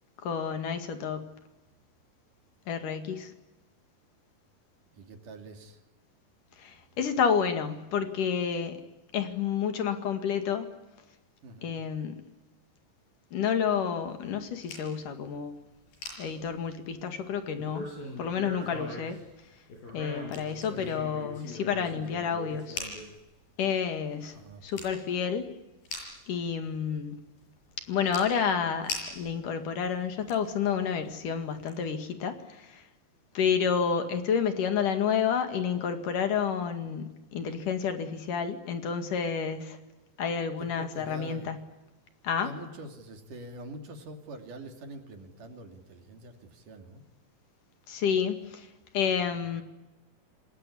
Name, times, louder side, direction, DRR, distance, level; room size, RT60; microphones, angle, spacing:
voice 1, 0.2-1.3 2.7-3.3 6.6-8.8 9.1-10.7 11.6-12.2 13.3-15.6 16.2-17.9 18.2-19.2 19.9-22.8 23.6-24.3 24.6-25.5 26.3-27.2 27.9-32.8 33.4-39.8 40.2-41.6 42.2-42.5 47.9-48.7 48.9-49.6, left 7 dB, 65° left, 8 dB, 3.6 m, -30 dB
voice 2, 5.0-5.8 11.4-11.7 18.6-18.9 20.5-21.0 24.3-24.9 40.6-41.5 42.4-47.0 49.3-49.5, right 2 dB, 65° right, 5 dB, 4.3 m, -45 dB
sound 1, 14.1-14.9 15.5-15.6 15.9-17.0 17.5-19.3 19.7-23.4 23.8-23.9 24.2-25.0 25.2-25.4 25.8-26.3 27.0-27.1 27.4-29.4 29.9-30.5 30.9-31.1 31.7-31.8, left 2 dB, 85° left, 8.8 m, -40 dB
28.0 x 20.0 x 9.9 m, 1.0 s
omnidirectional pair, 4.0 m